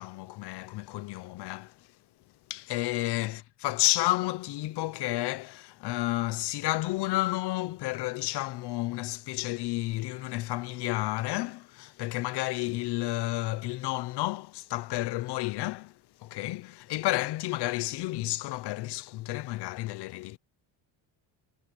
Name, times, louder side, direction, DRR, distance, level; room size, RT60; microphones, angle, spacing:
voice 1, 0.0-1.9 2.5-20.4, left 18 dB, 70° left, 0.9 m, -31 dB
cardioid pair, 130°, 41 cm